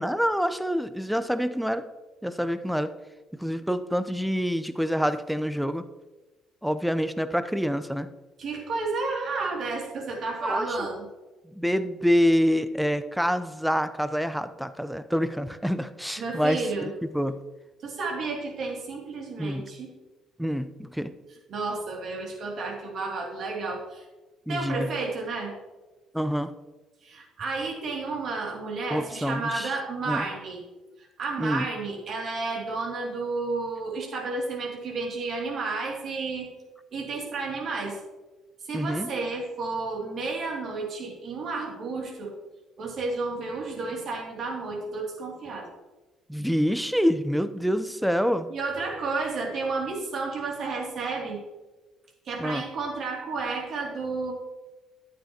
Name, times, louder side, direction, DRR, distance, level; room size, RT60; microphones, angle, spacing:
voice 1, 0.0-1.9 2.2-2.9 3.3-5.9 6.6-8.1 10.4-10.9 11.5-17.4 19.4-19.7 20.4-21.1 24.5-24.9 26.1-26.5 28.9-29.7 30.1-30.3 31.4-31.7 38.7-39.1 46.3-48.5 52.4-52.6, equal, ahead, 12 dB, 0.7 m, -26 dB
voice 2, 8.4-11.1 16.2-16.9 17.8-19.9 21.5-24.0 24.5-25.6 27.0-30.6 31.2-36.5 36.9-38.0 38.6-42.3 42.8-45.7 48.5-51.4 52.3-54.3, right 3 dB, 55° right, -1 dB, 2.7 m, -31 dB
11.0 x 8.8 x 3.0 m, 1.2 s
hypercardioid pair, 55°, 0 cm